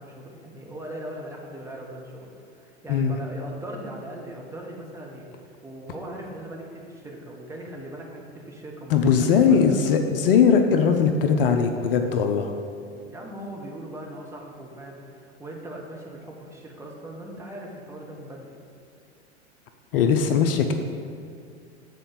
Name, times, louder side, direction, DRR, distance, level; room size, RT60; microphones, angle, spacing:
voice 1, 0.0-9.8 13.0-18.6, right 1 dB, 10° right, -2 dB, 1.2 m, -39 dB
voice 2, 8.9-12.5 19.9-20.7, left 6 dB, 55° left, 6 dB, 0.6 m, -20 dB
7.7 x 4.4 x 6.3 m, 2.3 s
figure-of-eight pair, 85°, 34 cm